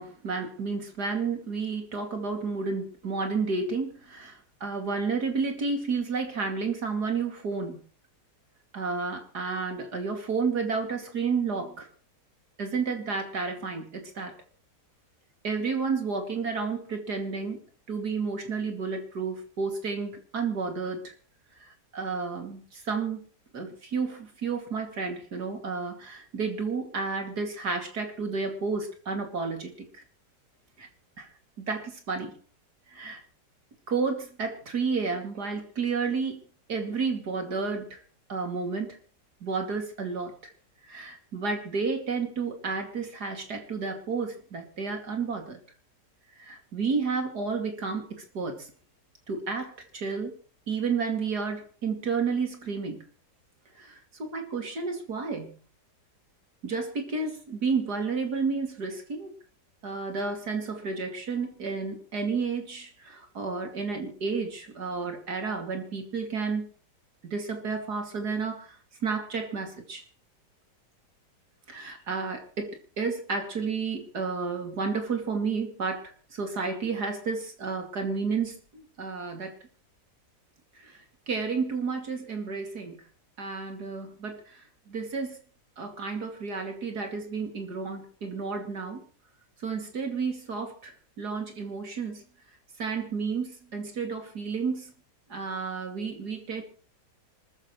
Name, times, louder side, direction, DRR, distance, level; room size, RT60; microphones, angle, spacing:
voice 1, 0.0-7.8 8.7-11.9 12.6-14.3 15.4-17.6 17.9-21.1 21.6-23.3 23.5-30.0 30.8-30.9 31.2-31.3 31.6-32.3 32.9-33.2 33.9-36.4 36.7-38.0 38.3-39.0 39.4-40.4 40.9-45.6 46.4-48.7 49.3-50.3 50.7-53.0 53.8-55.5 56.6-59.3 59.8-66.7 67.2-68.8 69.0-70.0 71.7-79.6 80.7-81.0 81.3-83.0 83.4-85.4 85.8-89.0 89.6-92.2 92.8-94.9 95.3-96.6, right 4 dB, 65° right, 4 dB, 3.1 m, -31 dB
26.0 x 13.5 x 3.2 m, 0.39 s
omnidirectional pair, 1.9 m